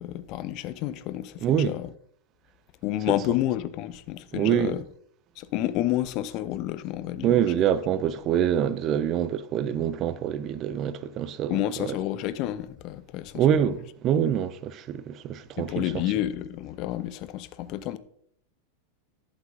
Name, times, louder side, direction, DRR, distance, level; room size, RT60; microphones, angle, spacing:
voice 1, 0.0-1.9 2.8-4.8 5.4-7.5 11.5-13.4 15.6-18.0, left 13 dB, 40° left, 0.5 m, -30 dB
voice 2, 1.4-1.8 4.3-4.8 7.2-11.9 13.4-15.9, right 9 dB, 35° right, 0.4 m, -25 dB
11.5 x 8.0 x 2.7 m
figure-of-eight pair, 90°, 0 cm